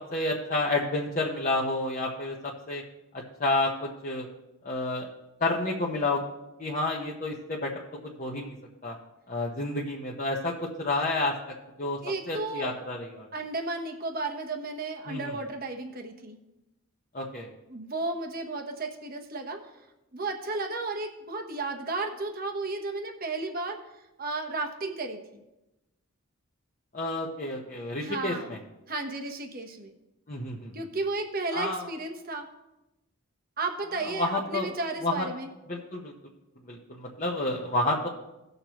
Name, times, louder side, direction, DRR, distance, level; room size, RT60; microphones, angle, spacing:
voice 1, 0.1-2.8 3.4-4.3 4.6-5.1 5.4-6.2 6.6-7.7 8.2-8.5 8.8-8.9 9.3-11.3 11.8-12.0 12.3-13.3 15.1-15.3 17.1-17.5 26.9-28.6 30.3-30.7 31.5-31.9 34.2-34.7 35.0-35.3 35.7-36.1 36.7-38.1, left 2 dB, 35° left, -3 dB, 1.0 m, -30 dB
voice 2, 12.0-12.8 13.3-16.4 17.7-19.6 20.1-23.8 24.2-25.4 28.0-28.5 28.9-29.9 30.7-32.5 33.6-35.5, right 3 dB, 40° right, 4 dB, 1.1 m, -33 dB
18.0 x 6.7 x 3.0 m, 0.97 s
head